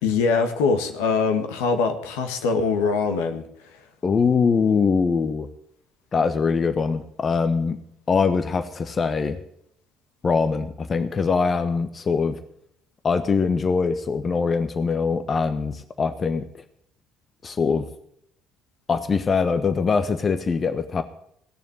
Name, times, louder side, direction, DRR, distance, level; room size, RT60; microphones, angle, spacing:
voice 1, 0.0-3.4, left 4 dB, 75° left, 6 dB, 1.7 m, -23 dB
voice 2, 4.0-5.5 6.1-7.8 8.1-9.4 10.2-12.4 13.0-16.5 17.4-17.9 18.9-21.0, left 5 dB, 40° left, 10 dB, 1.2 m, -22 dB
17.5 x 7.1 x 9.9 m, 0.71 s
hypercardioid pair, 50°, 0 cm